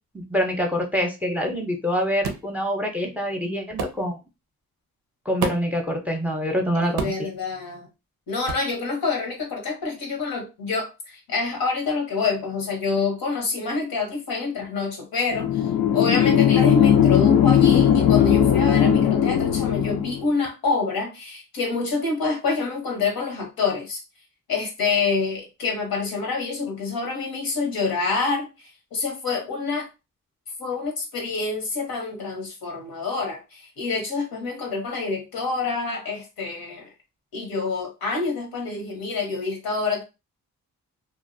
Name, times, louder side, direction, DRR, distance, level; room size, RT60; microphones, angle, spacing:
voice 1, 0.1-4.2 5.3-7.1, equal, 5° right, 2 dB, 0.6 m, -25 dB
sound 1, 2.2-2.5 3.8-4.0 5.4-5.8 7.0-7.3 8.5-8.7, right 5 dB, 85° right, 0.5 m, -29 dB
voice 2, 6.7-7.9 8.3-15.7 15.9-24.0 24.5-28.5 28.9-29.9 30.6-36.9 37.3-40.0, left 4 dB, 90° left, 1 dB, 0.9 m, -27 dB
sound 2, 15.3-20.3, left 9 dB, 70° left, 0.5 m, -18 dB
2.4 x 2.0 x 2.5 m, 0.27 s
cardioid pair, 60°, 35 cm